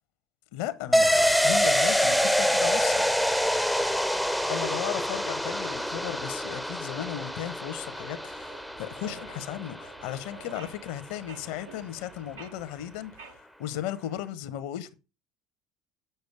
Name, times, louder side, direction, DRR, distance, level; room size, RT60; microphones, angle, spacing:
voice 1, 0.5-1.1 1.4-3.1 4.5-14.9, left 12 dB, 65° left, 0.8 m, -36 dB
sound 1, 0.9-10.3 10.6-10.7, equal, ahead, 0.5 m, -26 dB
sound 2, 7.9-13.4, right 5 dB, 85° right, 1.2 m, -49 dB
6.8 x 6.5 x 4.7 m
hypercardioid pair, 70°, 0 cm